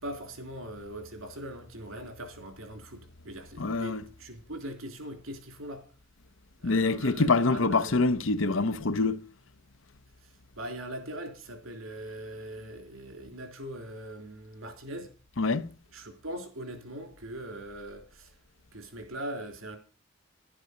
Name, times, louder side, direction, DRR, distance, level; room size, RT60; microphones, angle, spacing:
voice 1, 0.0-5.9 6.6-8.0 10.5-15.1 15.9-18.4 18.7-19.8, right 1 dB, 80° right, 3.5 m, -41 dB
voice 2, 3.6-4.1 6.6-9.2 15.4-15.7, left 3 dB, 70° left, 0.8 m, -25 dB
12.0 x 11.5 x 5.2 m
head